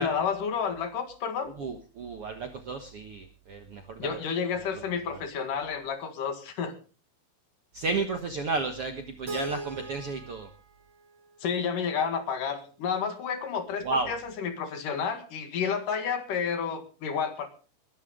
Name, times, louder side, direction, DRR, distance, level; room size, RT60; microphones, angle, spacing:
voice 1, 0.0-1.5 4.0-6.7 11.4-17.5, left 6 dB, 65° left, 8 dB, 3.2 m, -30 dB
voice 2, 1.6-4.2 7.7-10.5 13.8-14.1, right 3 dB, 60° right, 5 dB, 1.6 m, -32 dB
Keyboard (musical), 9.3-12.2, right 3 dB, 35° right, 2.7 m, -41 dB
21.0 x 12.0 x 3.7 m, 0.35 s
omnidirectional pair, 4.3 m